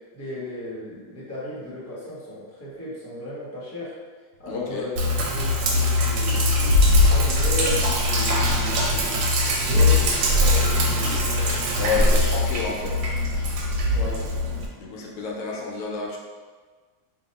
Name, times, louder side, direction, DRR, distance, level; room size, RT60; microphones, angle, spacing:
voice 1, 0.1-3.9 4.4-5.0 5.3-6.5 6.9-11.6 11.9-12.2 13.9-14.5, left 1 dB, 15° left, -8 dB, 0.7 m, -35 dB
voice 2, 4.5-4.9 11.8-13.0 14.8-16.2, left 5 dB, 80° left, -1 dB, 1.1 m, -29 dB
Sink (filling or washing), 5.0-14.7, left 1 dB, 90° right, 1.1 m, -21 dB
2.8 x 2.5 x 4.0 m, 1.4 s
omnidirectional pair, 1.6 m